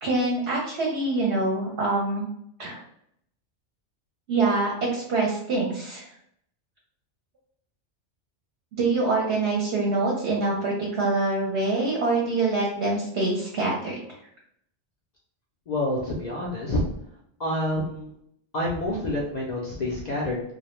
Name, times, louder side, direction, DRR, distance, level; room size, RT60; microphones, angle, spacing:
voice 1, 0.0-2.3 2.6-2.8 4.3-6.1 8.7-14.0, right 3 dB, 65° right, -2 dB, 0.8 m, -25 dB
voice 2, 15.7-16.8 17.4-18.1 18.5-20.4, left 1 dB, 55° left, -4 dB, 0.5 m, -28 dB
2.2 x 2.0 x 3.0 m, 0.71 s
omnidirectional pair, 1.2 m